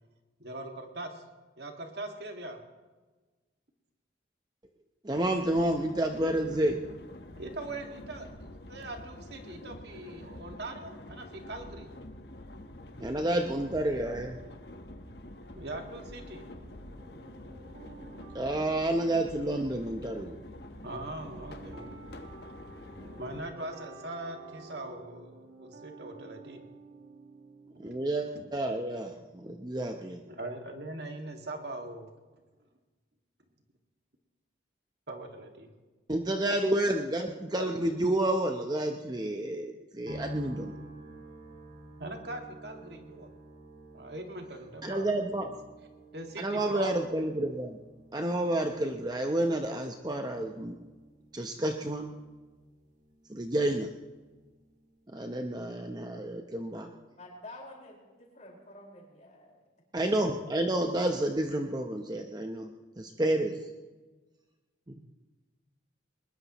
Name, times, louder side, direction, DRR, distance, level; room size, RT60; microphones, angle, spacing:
voice 1, 0.4-1.2 1.6-2.6 7.4-11.9 15.6-16.4 20.8-21.9 23.2-26.6 27.7-28.4 30.3-32.1 35.1-35.7 37.6-37.8 42.0-43.3 43.9-45.1 45.4-45.5 46.1-46.9, right 2 dB, 60° right, 3 dB, 2.1 m, -41 dB
voice 2, 5.0-6.8 13.0-14.4 18.3-20.4 27.8-30.2 36.1-40.8 44.8-45.5 46.4-47.8 48.1-50.7 51.3-52.2 53.3-53.9 55.1-56.9 59.9-62.7 63.0-63.6, right 1 dB, 20° right, 4 dB, 0.8 m, -30 dB
sound 1, 5.1-23.4, left 1 dB, 60° left, 1.2 m, -47 dB
sound 2, 16.1-28.8, right 3 dB, 85° right, 2.3 m, -52 dB
sound 3, 40.1-55.3 55.6-56.4, right 1 dB, 45° right, 3.4 m, -50 dB
voice 3, 57.2-59.6 60.7-61.1, left 1 dB, 40° left, -1 dB, 4.9 m, -49 dB
21.5 x 20.5 x 3.1 m, 1.3 s
head